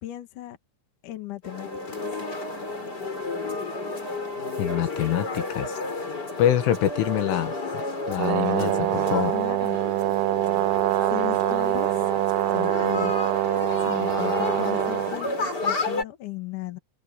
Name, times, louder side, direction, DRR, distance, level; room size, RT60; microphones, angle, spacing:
voice 1, 0.0-0.6 1.0-2.0 9.3-9.8 11.1-11.9 12.5-13.1 13.8-16.8, left 14 dB, 50° left, 2.8 m, -36 dB
sound 1, 1.4-16.0, left 3 dB, 20° left, 4.8 m, -31 dB
voice 2, 4.6-5.8 6.4-7.8 8.1-9.3, left 11 dB, 80° left, 4.2 m, -25 dB
Brass instrument, 8.2-15.2, right 20 dB, 85° right, 3.1 m, -24 dB
omnidirectional pair, 5.7 m